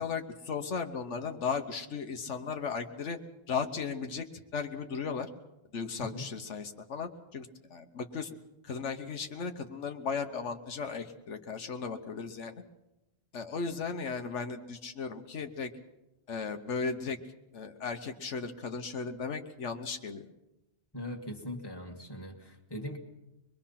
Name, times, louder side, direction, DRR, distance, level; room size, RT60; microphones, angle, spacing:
voice 1, 0.0-3.2 3.5-4.2 4.5-5.3 5.7-8.3 8.6-12.6 13.3-15.7 16.3-17.2 17.5-20.3, left 5 dB, 80° left, 6 dB, 1.4 m, -36 dB
voice 2, 20.9-23.0, left 1 dB, 20° left, 2 dB, 2.1 m, -40 dB
24.5 x 21.5 x 5.8 m, 0.94 s
omnidirectional pair, 1.2 m